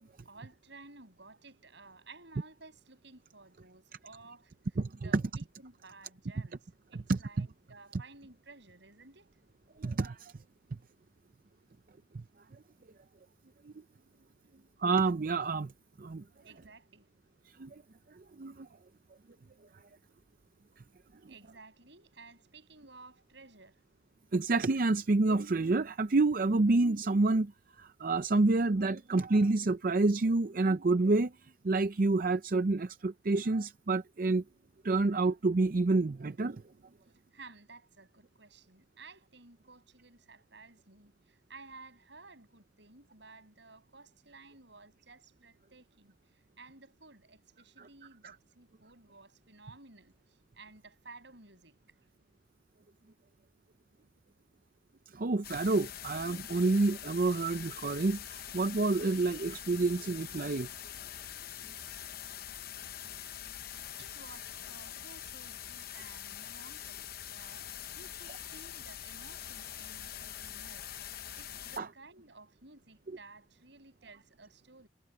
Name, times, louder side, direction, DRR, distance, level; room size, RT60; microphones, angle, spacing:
voice 1, 0.2-4.5 5.0-9.3 14.6-14.7 16.4-17.1 21.3-23.8 37.3-51.7 64.0-74.9, right 3 dB, 65° right, 7.5 m, -55 dB
voice 2, 4.8-5.2 7.1-7.5 9.8-10.3 14.8-15.7 16.0-16.2 17.6-17.7 18.4-18.7 24.3-27.5 27.8-31.3 31.6-34.4 34.8-36.6 55.1-60.7, right 3 dB, 45° right, 0.5 m, -28 dB
sound 1, 55.4-71.8, left 10 dB, 50° left, 0.8 m, -44 dB
head